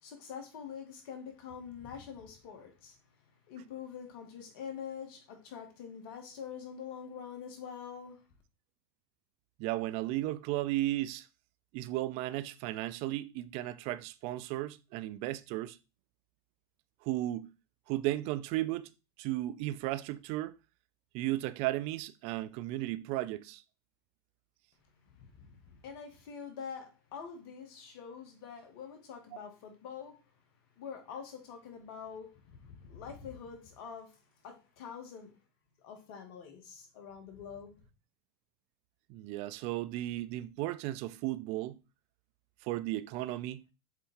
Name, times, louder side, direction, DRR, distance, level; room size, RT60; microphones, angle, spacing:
voice 1, 0.0-3.0 3.2-8.2 24.8-30.2 30.8-35.3 35.8-37.9, left 7 dB, 60° left, 2.3 m, -45 dB
voice 2, 9.6-11.3 11.7-15.8 17.0-17.5 17.9-18.9 19.2-20.6 21.1-23.6 39.1-41.8 42.6-43.6, right 16 dB, 50° right, 0.5 m, -35 dB
7.2 x 4.3 x 3.8 m
hypercardioid pair, 95°, 14 cm